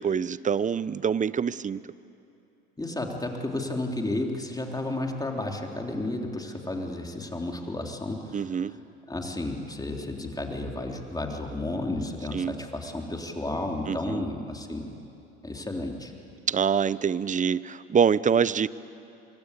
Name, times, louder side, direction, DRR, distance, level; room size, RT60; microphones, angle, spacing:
voice 1, 0.0-1.8 8.3-8.7 12.3-12.5 13.9-14.2 16.5-18.7, right 7 dB, 25° right, 18 dB, 0.7 m, -25 dB
voice 2, 2.8-8.8 9.1-15.0 15.4-16.1, left 2 dB, 10° left, 1 dB, 3.6 m, -32 dB
25.5 x 23.5 x 8.4 m, 2.7 s
hypercardioid pair, 75°, 31 cm